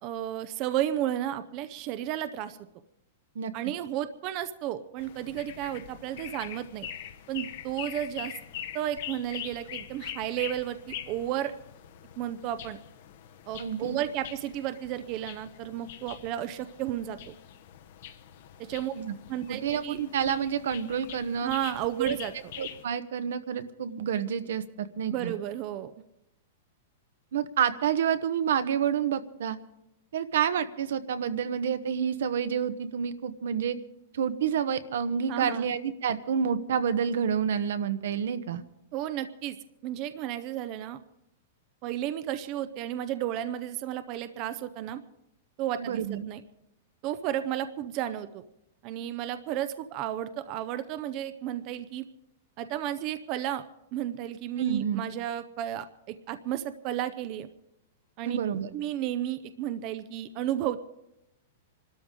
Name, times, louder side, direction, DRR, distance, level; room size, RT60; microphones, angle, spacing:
voice 1, 0.0-2.6 3.5-6.9 7.3-8.3 8.7-11.5 12.2-12.8 13.5-17.4 18.6-18.9 19.3-20.0 21.4-22.3 25.1-25.9 35.3-35.7 38.9-39.6 39.8-41.0 41.8-45.0 45.6-46.0 46.3-46.4 47.0-48.4 48.8-52.0 52.6-53.6 53.9-57.5 58.2-58.4 58.7-60.8, right 12 dB, 30° right, 12 dB, 0.5 m, -33 dB
sound 1, 5.0-22.8, left 10 dB, 55° left, 1.0 m, -44 dB
voice 2, 13.6-14.0 19.0-19.1 19.5-21.5 22.0-22.2 22.6-25.3 27.3-29.6 30.1-33.8 34.1-38.6 45.8-46.3 54.6-55.0 58.2-58.7, right 8 dB, 75° right, 12 dB, 0.9 m, -29 dB
25.5 x 13.0 x 3.8 m, 0.85 s
supercardioid pair, 165°, 0 cm